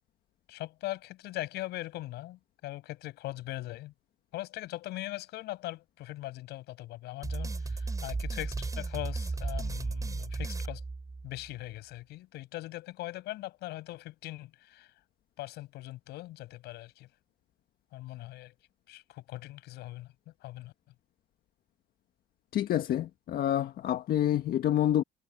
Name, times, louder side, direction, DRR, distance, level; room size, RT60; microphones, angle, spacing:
voice 1, 0.5-3.9 4.3-10.8 11.2-14.9 15.4-17.1 17.9-18.5 18.9-20.1 20.4-20.7, left 17 dB, 85° left, 6.7 m, -40 dB
sound 1, 7.2-11.5, right 3 dB, 20° right, 6.5 m, -35 dB
voice 2, 22.5-25.0, left 11 dB, 65° left, 1.5 m, -28 dB
cardioid pair, 110°, 17 cm